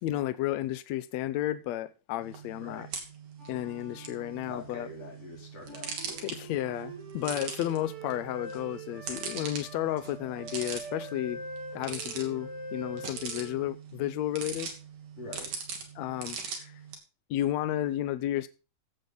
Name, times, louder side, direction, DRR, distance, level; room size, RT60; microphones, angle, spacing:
voice 1, 0.0-2.9 3.5-4.9 6.2-11.4 11.7-14.7 16.0-16.8 17.3-18.5, left 13 dB, 80° left, 1.6 m, -32 dB
sound 1, 2.2-16.9, right 6 dB, 65° right, 4.3 m, -42 dB
voice 2, 2.6-2.9 4.5-6.3 15.2-15.6, left 2 dB, 45° left, 5.0 m, -45 dB
sound 2, 3.4-5.0 5.6-13.7, right 2 dB, 40° right, 3.1 m, -44 dB
16.0 x 9.2 x 4.0 m
omnidirectional pair, 4.1 m